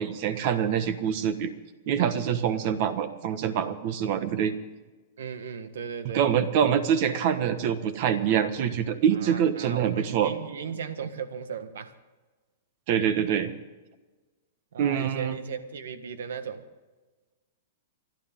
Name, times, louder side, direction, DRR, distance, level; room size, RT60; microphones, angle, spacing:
voice 1, 0.0-1.5 1.9-4.5 6.1-10.3 12.9-13.5 14.8-15.4, right 8 dB, 45° right, 11 dB, 1.4 m, -25 dB
voice 2, 5.2-6.3 9.1-12.0 14.7-16.7, right 6 dB, 80° right, 11 dB, 1.4 m, -36 dB
28.5 x 12.0 x 3.8 m, 1.2 s
hypercardioid pair, 150°, 0 cm